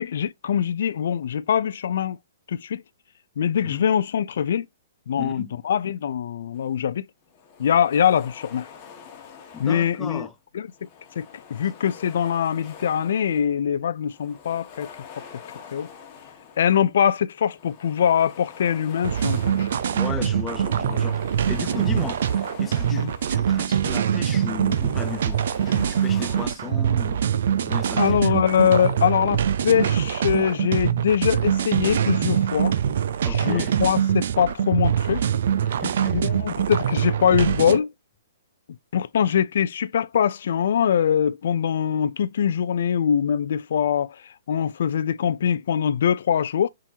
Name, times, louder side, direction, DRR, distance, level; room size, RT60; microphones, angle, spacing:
voice 1, 0.0-2.2 2.5-2.8 3.4-4.7 5.1-7.0 7.6-8.7 9.6-10.3 10.5-10.7 11.2-14.9 15.7-15.9 16.6-19.7 22.9-23.1 28.0-32.7 33.3-35.2 36.1-37.9 38.9-44.2 44.5-46.7, left 8 dB, 65° left, 0.4 m, -23 dB
voice 2, 5.2-5.5 9.5-10.3 19.9-22.3 22.6-27.2 27.6-28.4 33.2-33.8 35.6-36.3, left 5 dB, 10° left, 0.5 m, -35 dB
sound 1, 6.5-6.8 7.2-10.3 10.6-13.7 14.0-16.9 17.3-23.7 24.1-26.5, left 7 dB, 30° left, 1.2 m, -46 dB
sound 2, 19.0-37.8, right 9 dB, 60° right, 0.5 m, -23 dB
4.4 x 3.7 x 2.8 m
hypercardioid pair, 155°, 0 cm